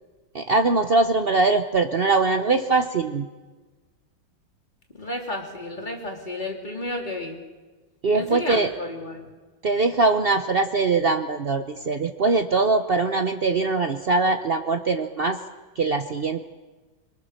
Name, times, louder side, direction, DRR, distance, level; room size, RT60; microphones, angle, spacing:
voice 1, 0.3-3.3 8.0-8.7 9.6-15.4 15.8-16.4, right 3 dB, 75° right, 7 dB, 0.5 m, -22 dB
voice 2, 4.9-7.4 8.1-9.3, left 1 dB, 20° left, 0 dB, 3.0 m, -32 dB
25.5 x 22.5 x 6.6 m, 1.3 s
omnidirectional pair, 2.3 m